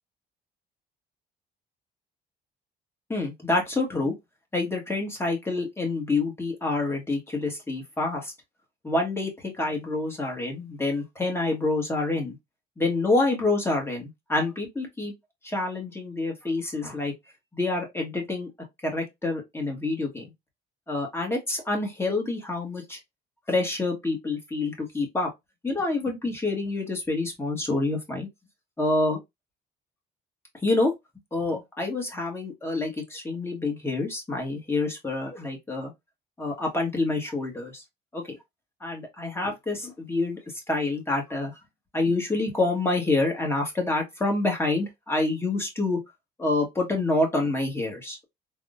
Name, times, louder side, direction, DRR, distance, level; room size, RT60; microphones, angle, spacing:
voice 1, 3.1-4.1 4.5-8.3 8.8-12.4 12.8-15.1 15.4-17.1 17.5-18.5 18.8-20.3 20.9-23.0 23.5-25.3 25.6-28.3 28.8-29.2 30.6-30.9 31.3-35.9 36.4-37.8 38.1-38.4 38.8-40.4 40.7-41.5 41.9-46.0 46.4-48.2, left 2 dB, 10° left, 1.4 m, -27 dB
3.5 x 2.3 x 2.5 m
cardioid pair, 85°, 20 cm